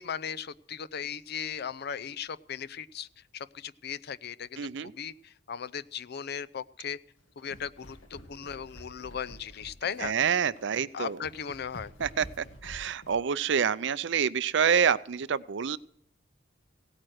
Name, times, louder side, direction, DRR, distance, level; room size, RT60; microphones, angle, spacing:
voice 1, 0.0-3.1 3.3-7.0 7.4-10.1 10.9-11.9, left 7 dB, 55° left, 18 dB, 0.5 m, -37 dB
voice 2, 4.6-4.9 10.0-11.2 12.0-15.8, right 7 dB, 65° right, 17 dB, 0.5 m, -27 dB
sound 1, 7.2-13.3, equal, 80° left, 1.8 m, -49 dB
17.0 x 8.9 x 6.4 m, 0.66 s
head